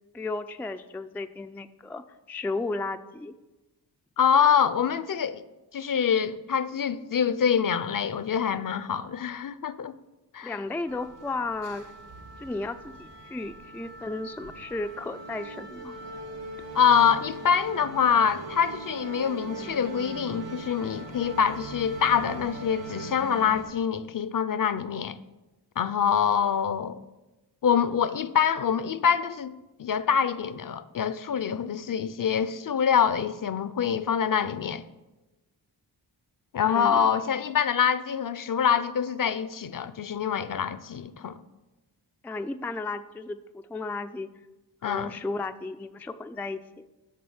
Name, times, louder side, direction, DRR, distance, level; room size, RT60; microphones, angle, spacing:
voice 1, 0.1-3.3 10.4-11.9 12.4-16.0 36.6-37.1 42.2-44.3 44.8-46.8, left 3 dB, 5° left, 0.3 m, -34 dB
voice 2, 4.2-5.4 5.7-9.9 10.3-10.6 16.7-25.2 25.8-27.0 27.6-34.8 36.5-41.4 44.8-45.1, left 7 dB, 50° left, 0.6 m, -25 dB
sound 1, 10.9-23.6, right 2 dB, 75° right, 1.7 m, -40 dB
7.5 x 6.0 x 7.1 m
cardioid pair, 75°, 43 cm